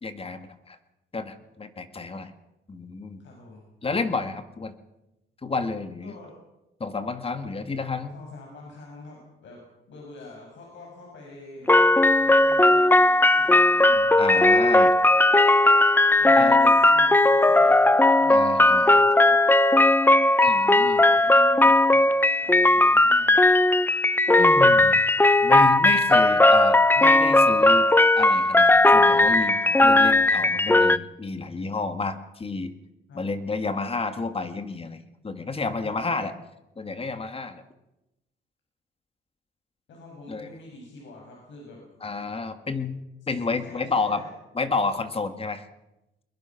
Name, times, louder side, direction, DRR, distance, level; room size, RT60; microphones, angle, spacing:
voice 1, 0.0-0.8 1.1-2.3 2.7-3.2 3.8-4.7 5.4-6.1 6.8-8.2 14.2-14.9 16.3-16.7 18.3-18.9 20.4-21.0 24.4-25.0 25.4-27.9 28.2-32.7 33.1-36.3 36.8-37.6 40.3-40.5 42.0-43.0 43.3-44.3 44.5-45.7, left 4 dB, 30° left, 9 dB, 2.1 m, -30 dB
voice 2, 3.2-3.6 6.0-6.4 7.4-7.5 8.1-11.7 12.2-13.0 13.3-14.4 16.2-19.4 21.0-22.1 22.4-23.4 33.1-33.3 35.8-36.3 39.9-41.8 43.2-44.3, left 2 dB, 70° left, -1 dB, 6.7 m, -46 dB
The Band Played On Clockwork Chime, 11.7-31.0, left 2 dB, 10° left, 0.7 m, -17 dB
22.5 x 21.5 x 6.0 m, 0.94 s
cardioid pair, 90°, 20 cm